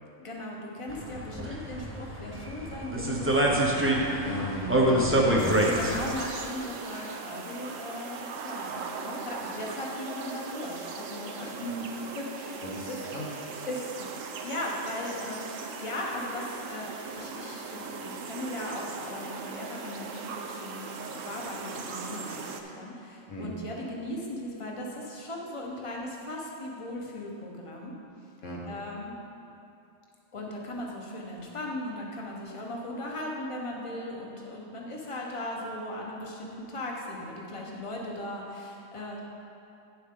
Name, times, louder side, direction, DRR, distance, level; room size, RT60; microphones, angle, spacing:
voice 1, 0.2-4.0 5.6-13.3 13.6-14.1 14.4-15.4 15.8-27.9 28.6-29.1 30.3-39.3, left 1 dB, 25° left, -2 dB, 1.1 m, -38 dB
sound 1, 0.9-6.1, right 1 dB, 15° right, 0.6 m, -26 dB
voice 2, 4.2-5.9 12.6-13.3 23.3-23.5 28.4-28.7, equal, 70° left, -2 dB, 1.7 m, -36 dB
sound 2, 5.4-22.6, right 5 dB, 75° right, 1.1 m, -39 dB
10.0 x 7.6 x 3.7 m, 2.7 s
omnidirectional pair, 1.4 m